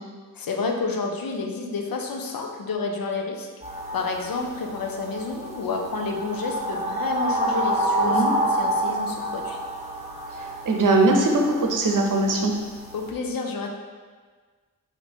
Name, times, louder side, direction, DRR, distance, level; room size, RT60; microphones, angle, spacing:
voice 1, 0.3-3.5 3.9-8.2 8.5-9.6 12.9-13.7, left 4 dB, 80° left, 2 dB, 0.6 m, -29 dB
sound 1, 3.6-13.1, right 1 dB, 20° right, 0.8 m, -29 dB
voice 2, 8.0-8.3 10.4-12.5, right 2 dB, 65° right, 1 dB, 0.7 m, -21 dB
4.2 x 2.7 x 4.3 m, 1.5 s
wide cardioid pair, 85°, 34 cm